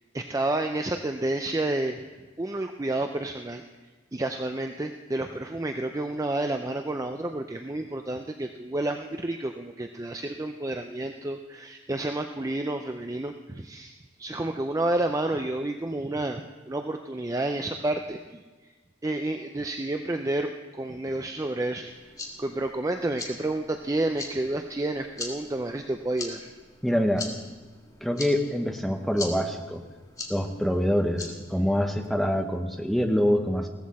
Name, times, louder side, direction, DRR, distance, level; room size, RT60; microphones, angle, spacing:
voice 1, 0.1-2.0 2.4-3.6 4.1-18.4 19.0-21.9 22.4-26.5, right 2 dB, 15° right, 6 dB, 0.4 m, -30 dB
sound 1, 21.8-32.1, left 3 dB, 15° left, 1.6 m, -42 dB
voice 2, 26.8-27.3 28.0-29.8 30.3-33.7, equal, ahead, 4 dB, 0.9 m, -25 dB
15.5 x 14.0 x 4.2 m, 1.3 s
head